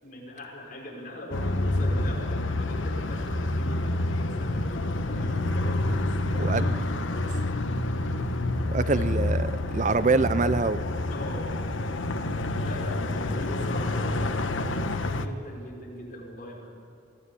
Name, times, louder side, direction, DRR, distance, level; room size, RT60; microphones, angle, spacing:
voice 1, 0.0-6.8 8.7-9.3 11.1-11.6 12.6-16.8, equal, 45° left, -2 dB, 5.3 m, -41 dB
sound 1, 1.3-15.3, left 2 dB, 85° left, 1.2 m, -28 dB
voice 2, 6.3-6.6 8.7-10.8, right 3 dB, 40° right, 14 dB, 0.5 m, -25 dB
25.0 x 15.5 x 8.4 m, 2.8 s
head